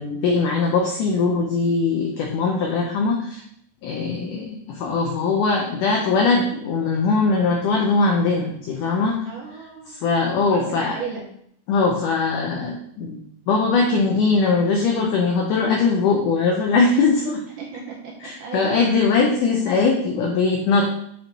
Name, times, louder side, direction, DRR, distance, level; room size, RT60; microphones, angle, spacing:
voice 1, 0.0-3.4 3.8-9.3 9.9-11.0 11.7-17.4 18.2-20.8, left 4 dB, 85° left, 0 dB, 1.8 m, -21 dB
voice 2, 3.9-4.3 9.2-10.0 10.5-11.3 17.6-18.1 18.4-18.8, right 5 dB, 75° right, -2 dB, 2.0 m, -35 dB
7.8 x 4.4 x 2.9 m, 0.69 s
omnidirectional pair, 4.5 m